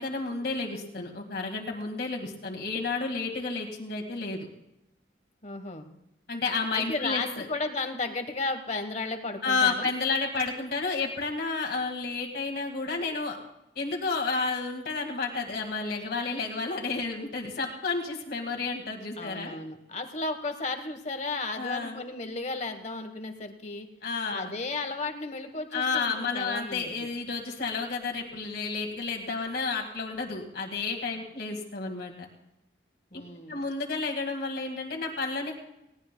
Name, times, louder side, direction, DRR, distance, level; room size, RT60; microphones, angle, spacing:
voice 1, 0.0-4.5 6.3-7.5 9.4-13.4 13.8-19.6 21.6-22.0 24.0-24.5 25.7-32.3 33.5-35.5, left 4 dB, 55° left, 1 dB, 1.9 m, -31 dB
voice 2, 5.4-5.9 6.7-9.9 19.2-23.9 24.3-27.1 33.1-33.6, left 3 dB, 35° left, 7 dB, 1.2 m, -34 dB
20.0 x 17.5 x 2.2 m, 0.88 s
head